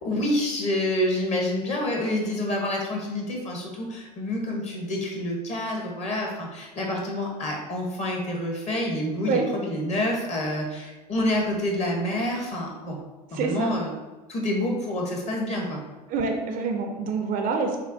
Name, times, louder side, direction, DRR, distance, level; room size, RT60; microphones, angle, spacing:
voice 1, 0.0-13.0 13.3-13.9 14.3-15.8, left 1 dB, 30° left, 0 dB, 1.1 m, -28 dB
voice 2, 13.3-13.7 16.1-17.8, right 4 dB, 40° right, 4 dB, 0.6 m, -26 dB
6.2 x 2.1 x 2.7 m, 1.2 s
figure-of-eight pair, 75°, 21 cm